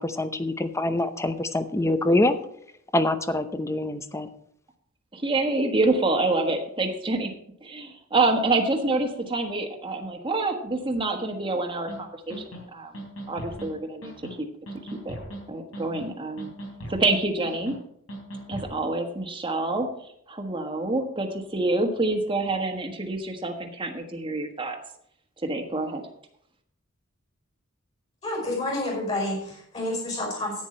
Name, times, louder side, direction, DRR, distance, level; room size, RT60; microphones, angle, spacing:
voice 1, 0.0-2.4 2.9-4.3, left 1 dB, 15° left, 10 dB, 0.7 m, -25 dB
voice 2, 5.1-7.3 7.6-12.9 13.3-14.1 14.4-14.5 15.0-15.2 15.5-16.5 16.9-17.8 18.5-24.8 25.4-26.0, right 2 dB, 25° right, 3 dB, 1.4 m, -27 dB
sound 1, 11.9-12.0 12.3-12.6 12.9-13.7 14.0-14.3 14.7-15.4 15.7-16.1 16.4-17.1 17.4-17.8 18.1-18.7, right 1 dB, 80° left, 4.1 m, -38 dB
voice 3, 28.2-30.6, left 1 dB, 35° left, -1 dB, 5.2 m, -29 dB
10.5 x 9.2 x 4.4 m, 0.70 s
head